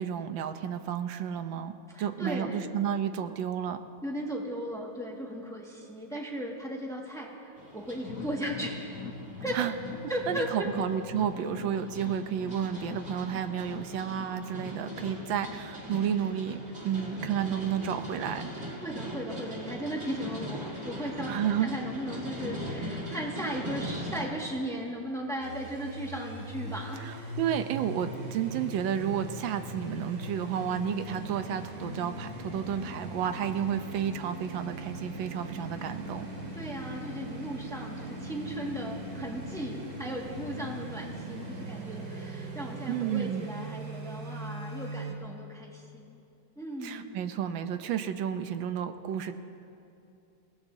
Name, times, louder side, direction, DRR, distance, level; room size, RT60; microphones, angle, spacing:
voice 1, 0.0-1.7 2.0-3.8 9.5-9.7 10.3-18.5 21.3-21.7 27.0-36.3 42.9-43.5 46.8-49.4, right 9 dB, 85° right, 9 dB, 1.4 m, -31 dB
voice 2, 1.9-2.7 4.0-9.0 9.4-9.6 10.1-10.7 18.8-27.3 36.5-46.2 46.6-47.2, equal, ahead, -2 dB, 1.6 m, -36 dB
sound 1, 7.6-24.3, equal, 35° right, 2.4 m, -41 dB
sound 2, 8.0-17.2 17.6-17.7 18.1-18.2, left 5 dB, 60° left, 1.0 m, -44 dB
sound 3, 25.4-45.1, right 1 dB, 50° right, 2.6 m, -40 dB
28.0 x 17.5 x 2.7 m, 2.7 s
omnidirectional pair, 2.1 m